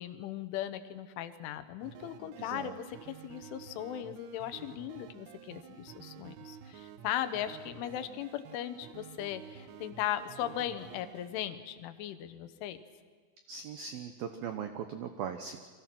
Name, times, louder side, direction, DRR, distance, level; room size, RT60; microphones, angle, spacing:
voice 1, 0.0-12.8, left 11 dB, 75° left, 10 dB, 3.4 m, -38 dB
sound 1, 1.8-11.3, right 9 dB, 70° right, 2.9 m, -50 dB
voice 2, 2.4-2.8 13.5-15.6, right 7 dB, 90° right, 7 dB, 2.1 m, -39 dB
30.0 x 24.0 x 6.1 m, 1.5 s
omnidirectional pair, 5.8 m